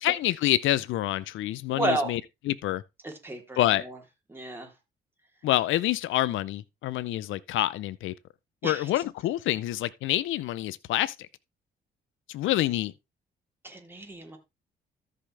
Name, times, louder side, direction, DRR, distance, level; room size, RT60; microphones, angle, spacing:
voice 1, 0.0-2.2 2.5-2.8 3.6-3.8 5.4-8.1 8.6-11.3 12.3-12.9, left 14 dB, 80° left, 0.6 m, -27 dB
voice 2, 1.7-2.1 3.0-4.0 4.3-4.7 8.6-8.9 13.6-14.4, right 2 dB, 10° right, 3.2 m, -32 dB
13.5 x 5.6 x 3.3 m
cardioid pair, 90°, 20 cm